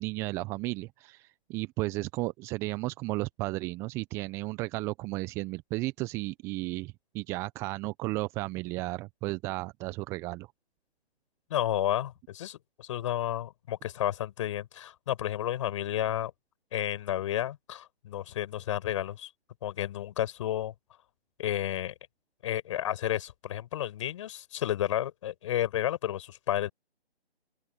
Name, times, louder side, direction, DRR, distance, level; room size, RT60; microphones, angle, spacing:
voice 1, 0.0-10.5, right 21 dB, 10° right, 1.0 m, -34 dB
voice 2, 11.5-16.3 16.7-19.3 19.6-20.7 21.4-21.9 22.4-26.7, left 12 dB, 30° left, 5.8 m, -31 dB
open air
figure-of-eight pair, 145°, 32 cm